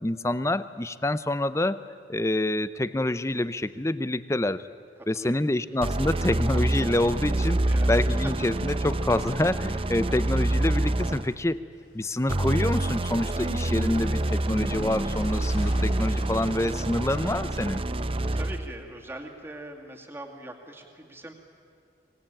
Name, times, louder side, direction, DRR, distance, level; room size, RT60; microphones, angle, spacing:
voice 1, 0.0-4.7 5.1-7.6 7.9-11.6 11.9-17.8, left 1 dB, 15° left, 14 dB, 0.6 m, -27 dB
voice 2, 5.0-5.4 7.7-8.3 10.0-10.2 18.3-21.3, right 1 dB, 15° right, 1 dB, 2.3 m, -42 dB
sound 1, 5.8-11.4 12.3-18.7, right 1 dB, 30° right, 0.7 m, -27 dB
sound 2, 11.7-18.7, left 1 dB, 55° left, 3.7 m, -49 dB
24.5 x 19.5 x 8.9 m, 2.3 s
head